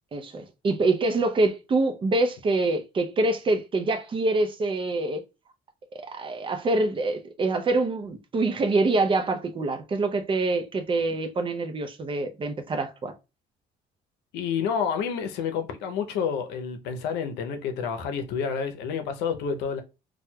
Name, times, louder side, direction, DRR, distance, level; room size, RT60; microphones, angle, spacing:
voice 1, 0.1-5.2 5.9-13.1, right 2 dB, 30° right, 0.5 m, -25 dB
voice 2, 14.3-19.8, left 6 dB, 90° left, 0.6 m, -29 dB
4.3 x 2.3 x 2.2 m
cardioid pair, 110°, 17 cm